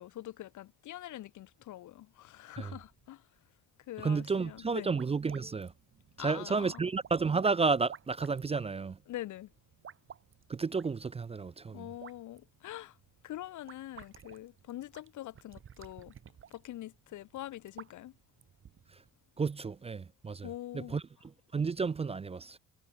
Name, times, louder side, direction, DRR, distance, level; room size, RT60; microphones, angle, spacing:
voice 1, 0.0-3.2 3.9-4.9 6.2-6.8 9.1-9.5 11.7-12.9 13.2-16.1 16.5-18.1 20.4-21.0, left 14 dB, 75° left, 1.2 m, -44 dB
voice 2, 4.0-5.7 6.2-9.0 10.5-11.9 19.4-20.5 20.7-21.0 21.5-22.6, right 4 dB, 20° right, 0.4 m, -31 dB
sound 1, 4.5-19.1, right 8 dB, 45° right, 1.2 m, -55 dB
cardioid pair, 90°, 30 cm